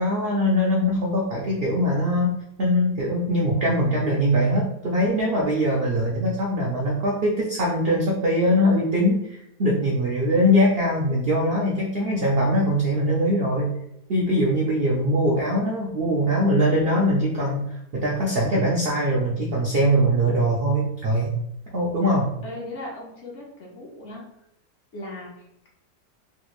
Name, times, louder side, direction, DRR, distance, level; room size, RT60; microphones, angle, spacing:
voice 1, 0.0-13.7 14.1-21.3 21.7-22.3, equal, 65° right, -3 dB, 0.6 m, -22 dB
voice 2, 22.4-24.2 24.9-25.7, left 1 dB, 55° left, -3 dB, 0.9 m, -38 dB
3.4 x 2.4 x 3.0 m, 0.78 s
omnidirectional pair, 1.7 m